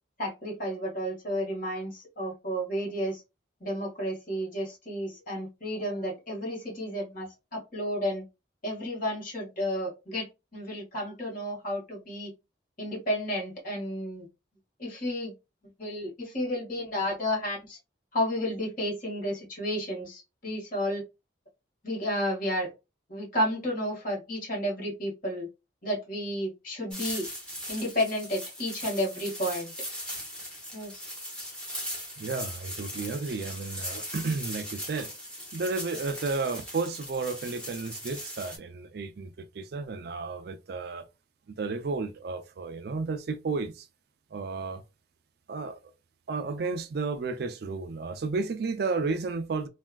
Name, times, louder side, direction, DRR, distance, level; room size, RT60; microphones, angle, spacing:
voice 1, 0.2-3.2 3.6-8.2 8.6-12.3 12.8-14.3 14.8-15.3 15.8-17.8 18.1-21.0 21.8-22.7 23.1-25.5 25.8-27.3 27.7-29.7 30.7-31.1, equal, 45° left, 1.6 m, -32 dB
sound 1, 26.9-38.6, equal, 5° left, 1.0 m, -39 dB
voice 2, 32.2-35.1 35.5-41.1 41.5-43.9 44.3-44.8 45.5-45.9 46.3-49.7, right 4 dB, 55° right, 0.4 m, -32 dB
3.3 x 2.3 x 2.2 m
head